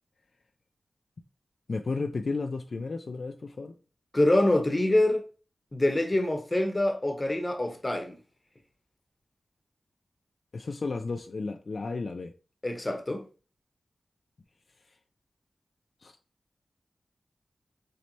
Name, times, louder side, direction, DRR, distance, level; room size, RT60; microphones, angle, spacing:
voice 1, 1.7-3.8 10.5-12.3 14.9-15.0 16.0-16.2, left 3 dB, 65° left, 0.3 m, -33 dB
voice 2, 4.1-5.2 5.7-8.2 12.6-13.2, left 1 dB, 30° left, 0.9 m, -25 dB
4.4 x 3.2 x 2.7 m
cardioid pair, 40°, 0 cm